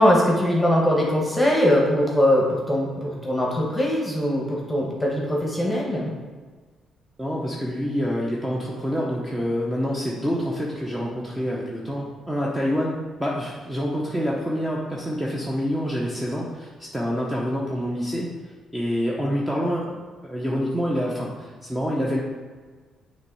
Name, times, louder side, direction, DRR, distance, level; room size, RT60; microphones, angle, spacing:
voice 1, 0.0-6.1, equal, 10° left, -3 dB, 1.3 m, -21 dB
voice 2, 7.2-20.0 20.2-22.2, equal, 10° right, -4 dB, 0.8 m, -27 dB
6.5 x 3.1 x 4.7 m, 1.5 s
cardioid pair, 90°, 0 cm